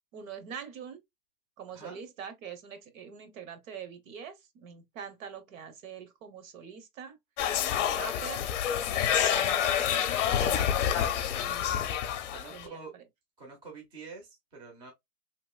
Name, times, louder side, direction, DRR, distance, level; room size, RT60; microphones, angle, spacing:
voice 1, 0.1-1.0 1.6-7.2 7.7-8.5 8.9-11.9 12.5-13.0, right 7 dB, 60° right, 1.0 m, -44 dB
sound 1, 7.4-12.6, left 9 dB, 50° left, 0.6 m, -28 dB
voice 2, 12.3-12.9 13.4-14.9, right 4 dB, 10° right, 0.5 m, -46 dB
3.0 x 2.8 x 2.2 m
hypercardioid pair, 150°, 46 cm